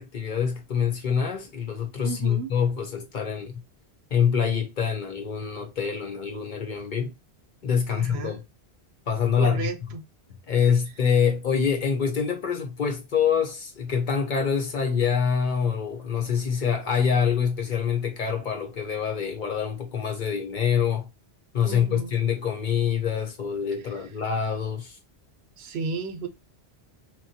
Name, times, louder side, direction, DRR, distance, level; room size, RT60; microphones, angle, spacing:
voice 1, 0.0-3.6 4.1-7.1 7.6-8.4 9.1-9.7 10.5-21.1 21.5-25.0, left 7 dB, 55° left, 0.7 m, -25 dB
voice 2, 2.0-2.5 7.9-8.4 9.4-10.0 21.6-22.1 25.6-26.3, right 5 dB, 75° right, 0.8 m, -33 dB
3.0 x 2.2 x 2.6 m
omnidirectional pair, 1.1 m